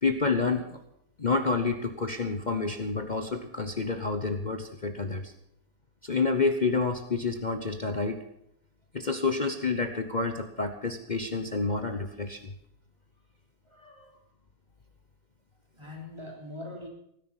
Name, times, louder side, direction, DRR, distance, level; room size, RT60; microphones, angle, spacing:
voice 1, 0.0-0.8 1.2-5.3 6.0-8.2 8.9-12.5, left 4 dB, 35° left, 7 dB, 1.0 m, -29 dB
voice 2, 13.7-14.3 15.7-16.9, left 2 dB, 15° right, 0 dB, 3.5 m, -43 dB
17.0 x 10.5 x 7.2 m, 0.74 s
omnidirectional pair, 1.6 m